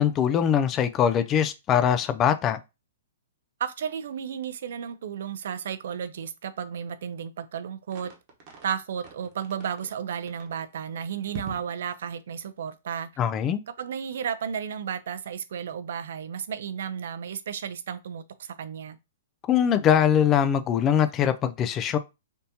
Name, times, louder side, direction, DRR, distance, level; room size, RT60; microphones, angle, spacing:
voice 1, 0.0-2.6 13.2-13.6 19.5-22.0, left 9 dB, 25° left, 0.3 m, -22 dB
voice 2, 3.6-8.1 8.6-13.1 13.8-19.0, right 8 dB, 70° right, 0.4 m, -33 dB
sound 1, 7.9-8.7 9.0-9.9 10.3-10.6 11.3-11.8, right 4 dB, 35° right, 1.0 m, -42 dB
3.5 x 2.7 x 2.7 m
hypercardioid pair, 140°, 0 cm